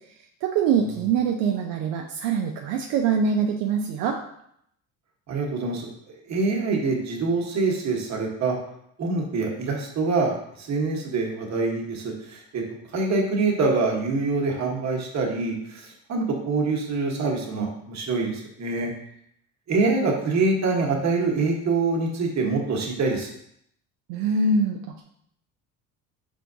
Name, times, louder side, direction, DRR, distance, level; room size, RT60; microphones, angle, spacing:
voice 1, 0.4-4.2 24.1-25.0, right 5 dB, 75° right, 2 dB, 0.5 m, -24 dB
voice 2, 5.3-5.9 6.3-8.5 9.0-12.6 12.9-18.9 19.7-23.3, right 3 dB, 40° right, 0 dB, 1.2 m, -25 dB
4.4 x 3.5 x 2.6 m, 0.72 s
supercardioid pair, 80°, 42 cm